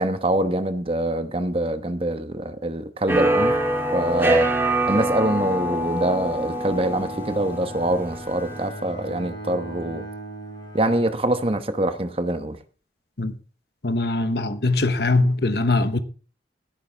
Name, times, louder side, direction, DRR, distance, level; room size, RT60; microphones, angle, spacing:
voice 1, 0.0-3.6 3.9-4.5 4.8-10.1 10.7-12.6, right 1 dB, 30° right, 1.0 m, -24 dB
sound 1, 3.1-8.7, right 1 dB, 15° right, 2.2 m, -24 dB
Bowed string instrument, 6.1-11.9, right 2 dB, 25° left, 5.6 m, -39 dB
voice 2, 13.8-16.0, left 2 dB, 65° left, 1.0 m, -21 dB
16.0 x 9.7 x 3.4 m
head